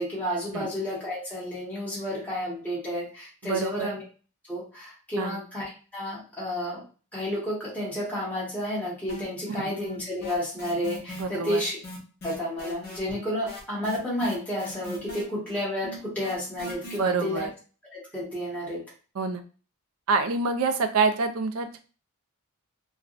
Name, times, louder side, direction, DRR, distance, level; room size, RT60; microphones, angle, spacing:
voice 1, 0.0-4.0 4.5-6.8 7.1-11.8 12.2-17.5 17.9-18.8, left 1 dB, 5° left, -8 dB, 1.2 m, -31 dB
voice 2, 3.4-3.9 5.2-5.4 11.2-11.6 17.0-17.5 19.2-19.4 20.1-21.8, right 4 dB, 65° right, 8 dB, 0.4 m, -26 dB
sound 1, 9.1-9.6 9.8-17.0, left 1 dB, 45° left, 1.1 m, -40 dB
3.4 x 2.2 x 2.4 m, 0.36 s
head